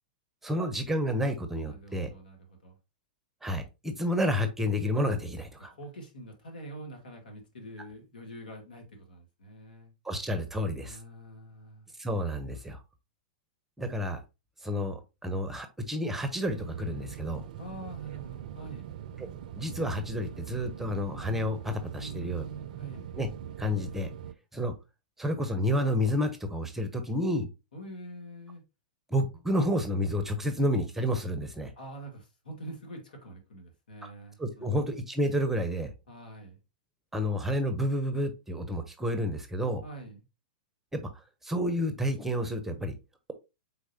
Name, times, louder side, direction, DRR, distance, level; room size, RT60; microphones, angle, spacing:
voice 1, 0.4-2.1 3.4-5.7 10.0-11.0 12.0-12.8 13.8-14.2 14.6-17.4 19.2-19.3 19.6-22.4 23.2-23.3 23.6-24.1 24.5-24.7 25.2-27.5 29.1-31.7 34.4-35.9 37.1-39.8 40.9-41.0 41.4-42.9, equal, 5° right, 0.8 m, -30 dB
voice 2, 1.7-2.8 5.7-9.9 10.8-11.9 17.6-18.9 22.0-23.1 27.7-28.6 31.8-34.8 36.1-36.6 39.8-40.2, right 1 dB, 75° left, 1.7 m, -45 dB
sound 1, 16.5-24.3, right 10 dB, 60° right, 0.4 m, -42 dB
4.7 x 3.9 x 2.8 m
hypercardioid pair, 110°, 5 cm